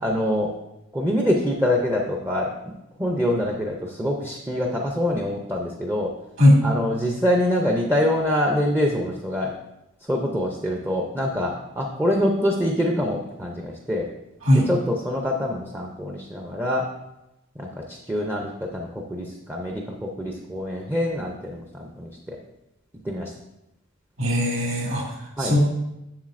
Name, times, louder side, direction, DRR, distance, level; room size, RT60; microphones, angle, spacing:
voice 1, 0.0-0.5 0.9-2.5 3.0-6.1 6.6-9.5 10.1-14.1 14.7-16.9 17.6-22.4 23.0-23.3 25.4-25.5, left 1 dB, 10° right, 0 dB, 0.5 m, -25 dB
voice 2, 24.2-25.0 25.4-25.6, left 1 dB, 60° right, -3 dB, 1.9 m, -18 dB
7.2 x 6.9 x 2.5 m, 0.92 s
head